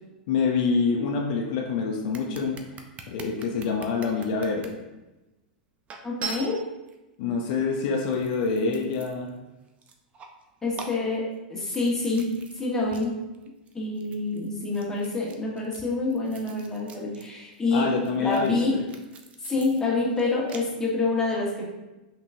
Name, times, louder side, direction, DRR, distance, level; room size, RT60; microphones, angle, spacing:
voice 1, 0.3-2.6 3.1-4.8 7.2-9.3 17.7-18.8, left 4 dB, 60° left, 2 dB, 0.6 m, -26 dB
sound 1, 2.1-4.7 5.3-5.4 5.9-7.0 7.7-9.4 9.7-10.4 10.7-12.6 12.9-13.1 13.3-17.3 17.5-20.6, right 5 dB, 30° right, 0.5 m, -42 dB
voice 2, 6.0-6.6 10.6-11.2 11.5-12.3 12.5-13.2 13.7-18.7 19.4-21.7, left 3 dB, 10° left, -5 dB, 1.4 m, -27 dB
5.9 x 2.9 x 2.7 m, 1.0 s
hypercardioid pair, 110°, 5 cm